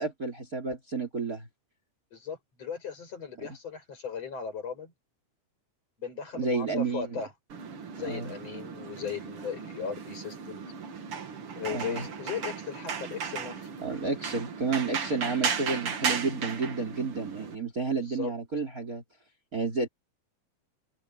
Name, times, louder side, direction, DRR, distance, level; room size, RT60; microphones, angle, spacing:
voice 1, 0.0-1.5 3.4-3.5 6.3-7.2 8.0-8.3 11.7-12.1 13.8-19.0 19.5-19.9, right 4 dB, 25° right, 3.5 m, -31 dB
voice 2, 2.1-4.9 6.0-7.3 7.9-10.7 11.6-13.7 18.0-18.3, left 7 dB, 40° left, 7.1 m, -37 dB
sound 1, 7.5-17.5, right 6 dB, 45° right, 2.2 m, -35 dB
omnidirectional pair, 4.4 m